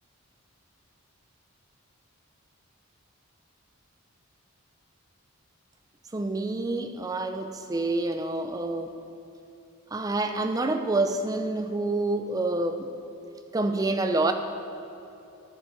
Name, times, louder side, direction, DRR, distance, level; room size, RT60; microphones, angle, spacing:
voice 1, 6.1-8.9 9.9-12.9 13.5-14.3, right 2 dB, 15° right, 7 dB, 0.4 m, -27 dB
9.5 x 7.3 x 5.0 m, 2.8 s
head